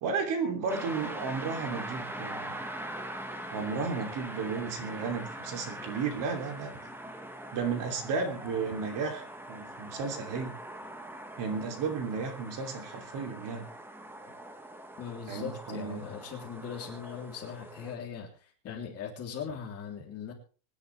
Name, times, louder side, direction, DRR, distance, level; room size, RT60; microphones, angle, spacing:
voice 1, 0.0-2.6 3.5-6.9 7.5-10.5 11.4-13.6 15.3-16.0, right 5 dB, 40° right, 5 dB, 2.9 m, -33 dB
sound 1, 0.7-18.0, right 1 dB, 5° right, 1.0 m, -42 dB
voice 2, 15.0-20.3, left 7 dB, 30° left, 1 dB, 3.3 m, -40 dB
24.5 x 10.5 x 3.4 m, 0.38 s
cardioid pair, 175°, 50 cm